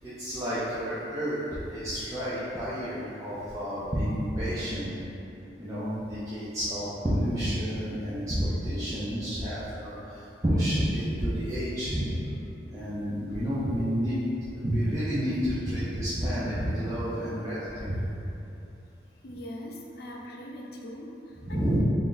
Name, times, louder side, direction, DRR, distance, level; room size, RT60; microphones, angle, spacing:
voice 1, 0.0-4.9 5.6-12.1 12.7-14.2 14.5-18.2 21.4-21.8, equal, 15° right, -13 dB, 0.5 m, -30 dB
voice 2, 19.2-21.8, equal, 55° left, -1 dB, 0.4 m, -41 dB
3.3 x 2.6 x 3.8 m, 2.8 s
head